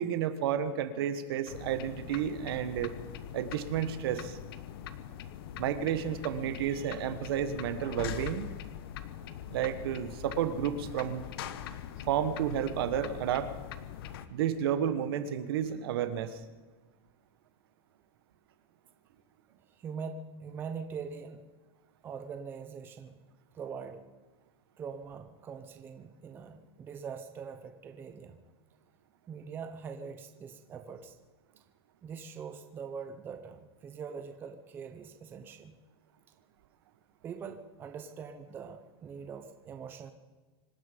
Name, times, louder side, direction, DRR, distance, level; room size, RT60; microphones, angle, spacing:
voice 1, 0.0-2.9 3.3-4.4 5.6-8.5 9.5-11.2 12.1-13.5 14.3-16.4, right 9 dB, 65° right, 11 dB, 1.5 m, -31 dB
sound 1, 1.5-14.3, left 10 dB, 65° left, 1.1 m, -42 dB
voice 2, 19.8-21.4 22.0-23.2 23.5-24.0 24.8-28.4 29.3-31.2 32.0-35.8 37.2-40.1, right 6 dB, 15° right, 7 dB, 0.7 m, -43 dB
25.5 x 10.5 x 5.3 m, 1.3 s
supercardioid pair, 175°, 13 cm